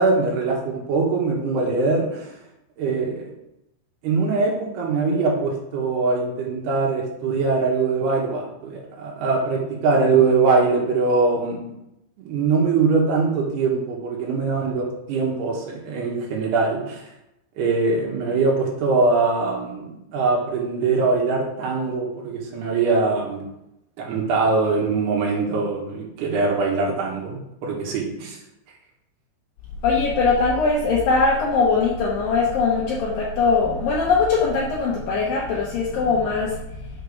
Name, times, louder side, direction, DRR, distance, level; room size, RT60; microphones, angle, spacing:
voice 1, 0.0-2.3 2.8-3.3 4.0-11.7 12.2-17.0 17.6-23.4 24.0-28.4, right 4 dB, 70° right, -1 dB, 3.1 m, -22 dB
voice 2, 29.8-36.6, left 4 dB, 90° left, -3 dB, 1.9 m, -21 dB
6.7 x 5.6 x 5.5 m, 0.86 s
omnidirectional pair, 5.4 m